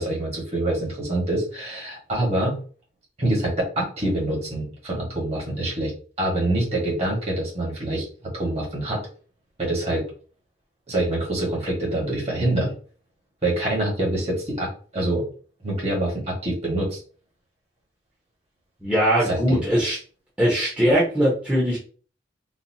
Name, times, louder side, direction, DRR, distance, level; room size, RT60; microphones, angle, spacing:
voice 1, 0.0-2.6 3.2-5.9 6.2-9.0 9.6-10.1 10.9-12.7 13.4-15.2 15.6-17.0 19.2-19.6, right 1 dB, 35° right, -3 dB, 1.5 m, -25 dB
voice 2, 18.8-20.0 20.4-21.8, equal, 5° right, -7 dB, 0.9 m, -20 dB
4.0 x 2.3 x 2.7 m, 0.40 s
head